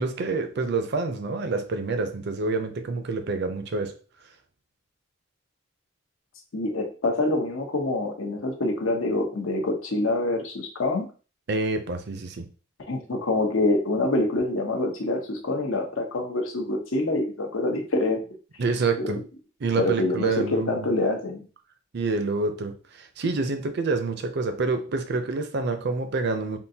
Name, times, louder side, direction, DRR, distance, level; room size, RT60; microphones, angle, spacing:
voice 1, 0.0-4.0 11.5-12.5 18.6-19.2 19.6-20.9 21.9-26.6, right 3 dB, 55° right, 0.5 m, -27 dB
voice 2, 6.5-11.1 12.9-18.2 19.0-19.1 19.7-21.4, left 2 dB, 85° left, 0.8 m, -26 dB
3.6 x 2.5 x 2.7 m
head